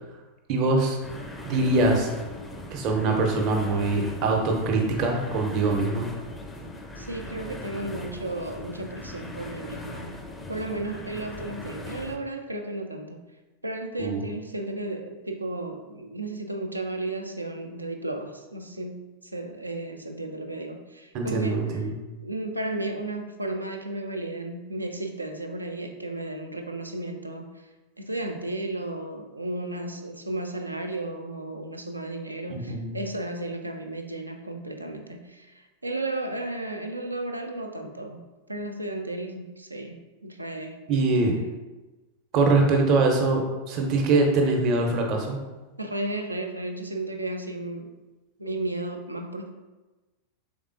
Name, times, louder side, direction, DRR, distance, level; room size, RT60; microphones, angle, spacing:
voice 1, 0.5-1.0 1.5-2.1 2.7-6.1 14.0-14.2 21.1-21.9 32.5-32.9 40.9-41.3 42.3-43.4 43.7-45.4, right 3 dB, 40° right, 2 dB, 0.7 m, -23 dB
sound 1, 1.0-12.2, left 1 dB, 10° left, 0.4 m, -39 dB
voice 2, 7.0-10.2 10.5-13.2 13.6-21.8 22.2-27.7 28.0-40.8 41.3-41.4 45.8-47.9 48.4-49.5, right 2 dB, 85° right, 4 dB, 0.4 m, -34 dB
3.6 x 3.5 x 2.4 m, 1.1 s
figure-of-eight pair, 90°, 0 cm